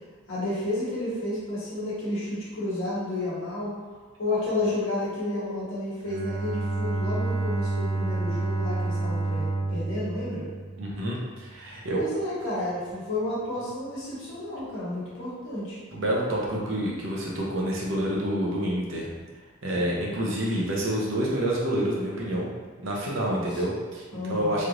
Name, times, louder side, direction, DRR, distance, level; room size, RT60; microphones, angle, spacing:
voice 1, 0.3-3.7 4.2-10.5 11.9-15.8 19.8-20.1 23.3-23.6 24.1-24.7, left 1 dB, 75° left, -8 dB, 1.1 m, -31 dB
Bowed string instrument, 6.0-11.3, right 3 dB, 45° right, 0.4 m, -29 dB
voice 2, 10.8-12.0 15.9-19.1 19.6-22.5 22.8-24.7, right 1 dB, 75° right, -4 dB, 0.7 m, -28 dB
3.3 x 2.5 x 3.0 m, 1.4 s
head